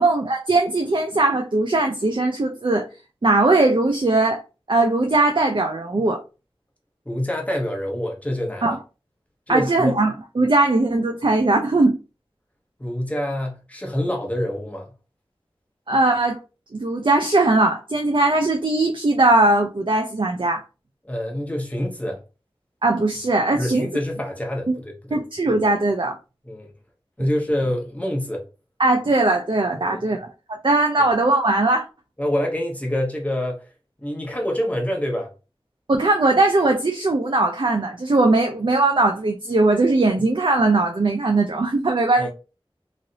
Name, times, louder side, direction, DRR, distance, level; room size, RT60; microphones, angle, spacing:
voice 1, 0.0-2.9 3.2-4.4 4.7-6.2 8.6-8.8 9.5-12.0 15.9-16.4 16.7-20.6 22.8-23.9 24.7-24.8 25.1-26.2 28.8-30.3 30.6-31.8 35.9-42.3, right 2 dB, 55° right, 0.5 m, -19 dB
voice 2, 7.0-8.8 9.5-10.0 12.8-14.9 21.1-22.2 23.6-25.2 26.4-26.7 27.2-28.5 29.8-30.2 32.2-33.6 34.0-35.3 42.2-42.3, left 1 dB, 15° left, 1.0 m, -26 dB
3.1 x 2.6 x 2.6 m
wide cardioid pair, 45°, 10 cm